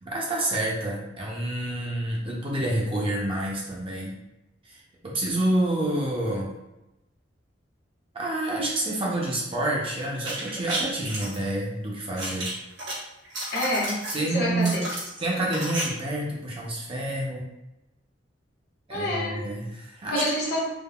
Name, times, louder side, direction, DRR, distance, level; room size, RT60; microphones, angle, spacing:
voice 1, 0.0-4.1 4.6-6.5 8.1-12.5 13.4-13.6 14.1-14.8 15.2-17.5 18.9-20.3, right 1 dB, 30° right, -4 dB, 0.6 m, -28 dB
sound 1, 10.1-11.4 12.2-12.9 13.2-14.2 14.6-15.8 16.1-16.2, right 1 dB, 80° right, 1.0 m, -32 dB
voice 2, 13.5-14.0 14.3-14.8 18.9-19.4 20.1-20.6, left 1 dB, 60° left, -6 dB, 1.3 m, -27 dB
3.5 x 2.2 x 2.3 m, 0.95 s
head